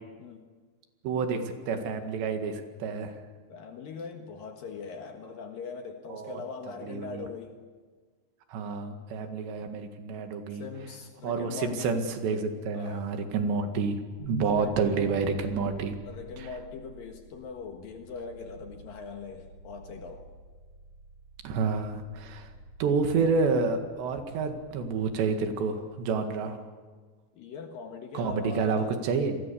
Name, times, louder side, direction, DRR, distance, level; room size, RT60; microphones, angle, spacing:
voice 1, 1.0-3.1 6.1-6.4 6.8-7.2 8.5-10.7 11.2-14.0 14.3-16.0 16.4-16.5 21.4-22.5 22.8-26.6 28.1-29.4, right 4 dB, 75° right, 6 dB, 4.1 m, -29 dB
voice 2, 3.5-7.6 10.6-12.0 12.7-13.1 14.6-14.8 16.1-20.3 27.3-29.0, left 5 dB, 60° left, 4 dB, 2.9 m, -41 dB
sound 1, 14.2-26.2, right 1 dB, 45° right, 4.7 m, -48 dB
29.5 x 22.0 x 7.1 m, 1.5 s
omnidirectional pair, 5.0 m